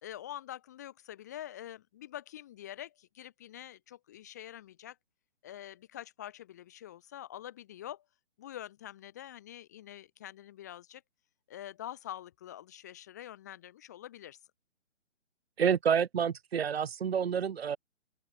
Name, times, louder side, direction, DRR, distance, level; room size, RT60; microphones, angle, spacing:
voice 1, 0.0-5.0 5.4-8.0 8.4-11.0 11.5-14.4, left 12 dB, 15° left, 0.9 m, -45 dB
voice 2, 15.6-17.8, right 7 dB, 50° right, 1.3 m, -28 dB
open air
hypercardioid pair, 170°, 38 cm